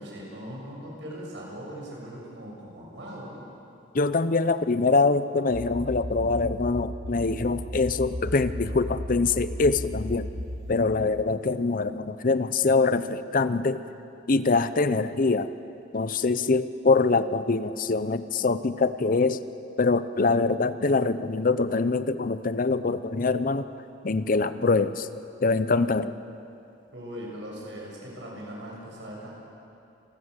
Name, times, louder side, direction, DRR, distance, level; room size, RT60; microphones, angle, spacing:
voice 1, 0.0-3.4 26.9-29.3, equal, 80° right, -3 dB, 6.8 m, -40 dB
voice 2, 3.9-10.3 10.7-13.8 14.3-15.5 15.9-19.4 19.8-23.6 24.0-25.1 25.4-26.1, left 3 dB, 50° left, 13 dB, 0.7 m, -24 dB
sound 1, 5.5-10.7, equal, 40° right, 3.0 m, -35 dB
27.5 x 13.0 x 8.1 m, 2.7 s
head